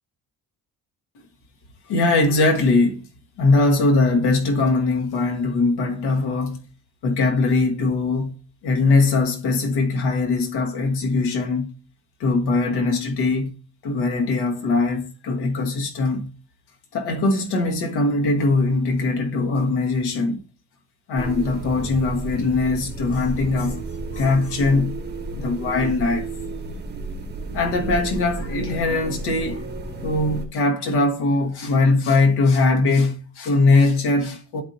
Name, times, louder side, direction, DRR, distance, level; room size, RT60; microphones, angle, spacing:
voice 1, 1.9-3.0 3.4-6.6 7.0-8.3 8.6-11.7 12.2-13.5 13.8-16.3 16.9-20.4 21.1-23.8 24.1-24.9 25.4-26.2 27.5-29.6 30.0-34.6, left 3 dB, 85° left, 1.4 m, -21 dB
sound 1, 21.2-30.5, right 2 dB, 25° right, 1.4 m, -32 dB
11.0 x 4.4 x 2.7 m
cardioid pair, 110°, 39 cm